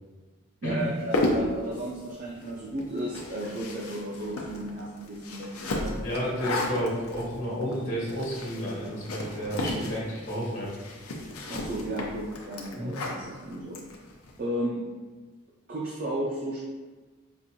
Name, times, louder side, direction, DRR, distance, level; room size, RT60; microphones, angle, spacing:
voice 1, 0.6-6.0 11.5-13.8 14.4-14.9 15.7-16.7, right 1 dB, 40° right, -4 dB, 0.4 m, -34 dB
sound 1, 0.9-14.4, left 1 dB, 85° left, 0.6 m, -34 dB
voice 2, 6.0-10.7 12.7-13.0, equal, 65° left, -7 dB, 1.1 m, -31 dB
5.8 x 2.5 x 2.7 m, 1.3 s
head